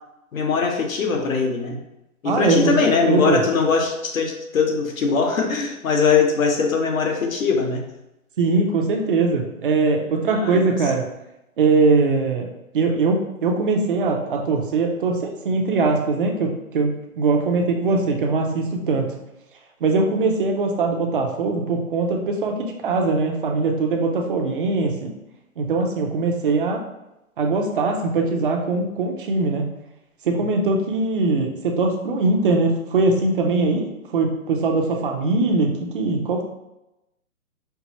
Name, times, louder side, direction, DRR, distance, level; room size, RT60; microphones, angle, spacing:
voice 1, 0.3-1.8 2.2-7.8 10.3-10.7, left 5 dB, 70° left, 2 dB, 1.0 m, -21 dB
voice 2, 2.2-3.4 8.4-11.0 11.6-12.5 12.7-19.2 19.8-25.1 25.6-26.8 27.4-29.7 30.2-33.9 34.1-36.4, right 3 dB, 40° right, 2 dB, 0.6 m, -21 dB
4.6 x 2.0 x 4.1 m, 0.91 s
hypercardioid pair, 155°, 43 cm